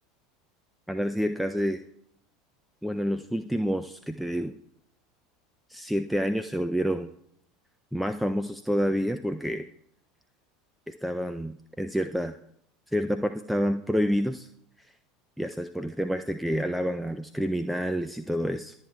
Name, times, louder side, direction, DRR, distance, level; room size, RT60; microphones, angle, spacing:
voice 1, 0.9-1.8 2.8-4.5 5.7-7.1 7.9-9.7 10.9-12.4 12.9-14.5 15.4-18.7, equal, ahead, 9 dB, 0.4 m, -28 dB
22.5 x 8.0 x 2.3 m, 0.71 s
hypercardioid pair, 80°, 0 cm